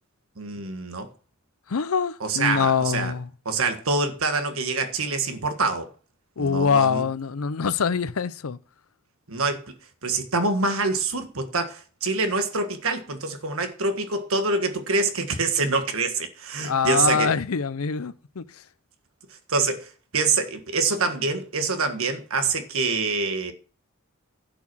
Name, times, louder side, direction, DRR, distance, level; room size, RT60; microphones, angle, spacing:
voice 1, 0.4-1.1 2.2-3.1 3.5-5.9 6.4-7.0 9.3-9.7 10.0-17.3 19.5-23.5, right 3 dB, 70° right, 1.6 m, -25 dB
voice 2, 1.7-3.3 6.4-8.6 16.6-18.6, left 6 dB, 70° left, 0.6 m, -24 dB
11.5 x 5.9 x 6.2 m
head